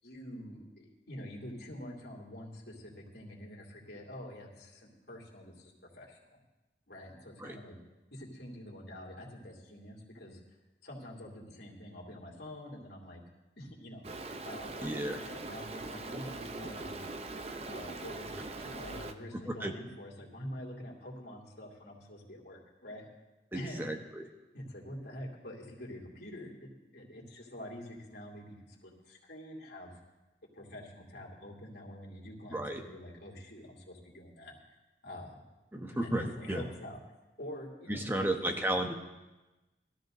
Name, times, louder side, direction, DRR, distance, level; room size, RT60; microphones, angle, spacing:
voice 1, 0.0-6.4 6.9-7.8 8.1-10.4 10.8-13.2 13.6-14.0 14.4-17.2 17.7-18.4 18.6-23.1 23.5-24.0 24.5-29.9 30.5-34.6 35.0-35.4 36.0-37.0 37.4-38.8, left 1 dB, 70° left, -3 dB, 2.9 m, -46 dB
Stream, 14.0-19.1, right 2 dB, 35° right, 0.6 m, -41 dB
voice 2, 14.8-15.2 19.3-19.7 23.5-24.2 32.5-32.8 35.7-36.6 37.9-38.9, right 1 dB, 10° right, 3 dB, 1.0 m, -33 dB
21.5 x 13.5 x 2.6 m, 1.1 s
head